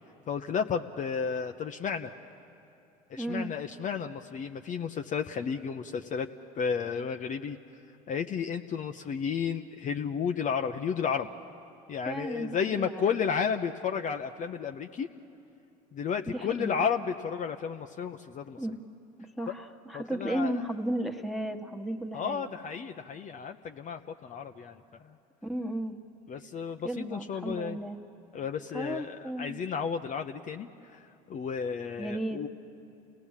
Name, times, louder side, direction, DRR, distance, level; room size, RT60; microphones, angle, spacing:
voice 1, 0.3-2.1 3.1-6.3 6.6-7.6 8.1-11.3 11.9-15.1 15.9-18.6 19.9-20.5 22.1-25.1 26.3-27.8 28.3-31.0 31.3-32.5, left 6 dB, 40° left, 5 dB, 0.8 m, -32 dB
voice 2, 3.2-3.5 12.0-13.0 16.3-16.9 18.6-18.8 19.4-22.5 25.4-26.0 26.8-28.0 28.7-29.6 32.0-32.4, right 1 dB, ahead, 3 dB, 1.4 m, -34 dB
28.0 x 18.0 x 7.3 m, 2.9 s
supercardioid pair, 85°, 20 cm